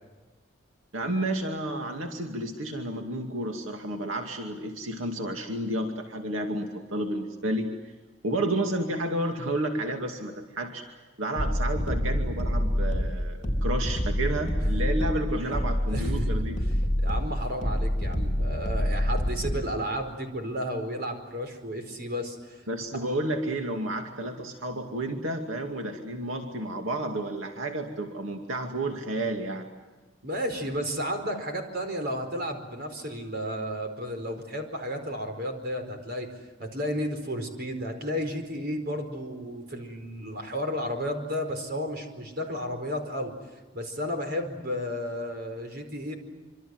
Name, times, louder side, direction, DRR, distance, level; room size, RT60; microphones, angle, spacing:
voice 1, 0.9-7.7 8.2-10.8 11.2-16.6 22.7-29.7, right 1 dB, 90° right, 3 dB, 2.4 m, -31 dB
sound 1, 11.4-19.7, equal, 35° left, 4.0 m, -27 dB
voice 2, 15.9-16.3 16.6-16.7 17.0-22.6 30.2-36.3 36.6-43.3 43.7-46.2, equal, 50° right, 5 dB, 4.8 m, -32 dB
26.5 x 25.5 x 7.9 m, 1.3 s
head